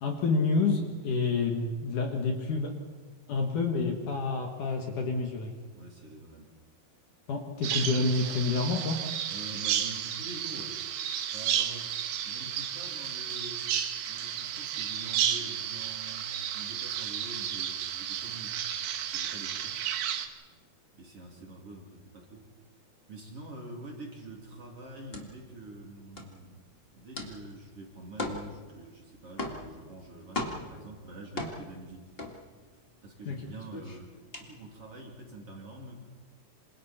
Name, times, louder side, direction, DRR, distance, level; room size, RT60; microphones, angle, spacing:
voice 1, 0.0-2.7 3.3-5.5 7.3-9.0 33.3-33.4, left 4 dB, 55° left, 2 dB, 2.8 m, -28 dB
voice 2, 5.7-6.5 9.3-10.8 11.3-11.9 12.3-18.6 19.1-19.8 20.9-22.5 23.1-26.6 26.9-32.1 33.0-36.0, right 2 dB, 40° right, -1 dB, 3.5 m, -46 dB
Bird vocalization bird call bird song, 7.6-20.3, right 9 dB, 65° right, 2.6 m, -32 dB
sound 1, 24.3-33.0 33.3-35.2, left 2 dB, 30° left, 1.0 m, -39 dB
27.5 x 27.0 x 4.4 m, 1.4 s
omnidirectional pair, 4.7 m